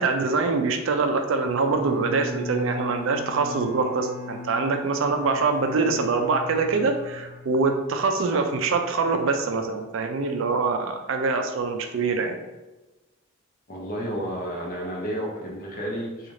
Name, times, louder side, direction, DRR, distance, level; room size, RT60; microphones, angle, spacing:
voice 1, 0.0-12.4, right 4 dB, 60° right, 5 dB, 0.4 m, -24 dB
Bowed string instrument, 1.4-8.0, left 1 dB, 10° right, 1.4 m, -38 dB
voice 2, 13.7-16.3, equal, 40° left, -2 dB, 0.7 m, -31 dB
3.7 x 2.4 x 3.1 m, 1.1 s
head